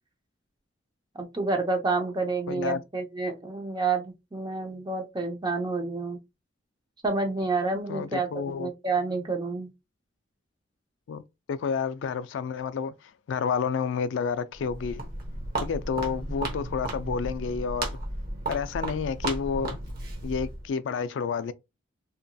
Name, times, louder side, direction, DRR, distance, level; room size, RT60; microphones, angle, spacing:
voice 1, 1.1-6.2 7.0-8.3 8.6-9.7, right 3 dB, 20° right, 0.6 m, -29 dB
voice 2, 2.5-2.8 7.9-8.7 11.1-11.2 11.5-15.0 15.6-18.0 18.5-19.8 20.2-21.5, left 6 dB, 70° left, 0.3 m, -30 dB
Walk footsteps, 14.5-20.7, right 2 dB, 50° right, 0.9 m, -34 dB
2.8 x 2.7 x 2.2 m
head